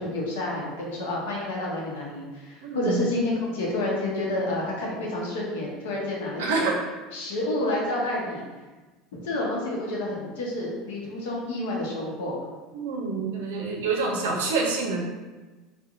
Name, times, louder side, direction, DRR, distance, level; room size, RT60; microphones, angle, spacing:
voice 1, 0.0-6.7 7.1-8.4 9.1-12.4, left 1 dB, 85° left, -3 dB, 0.7 m, -29 dB
voice 2, 2.6-3.0 6.4-6.8 12.7-15.0, right 4 dB, 90° right, 0 dB, 0.5 m, -27 dB
2.8 x 2.1 x 2.5 m, 1.2 s
supercardioid pair, 105°, 0 cm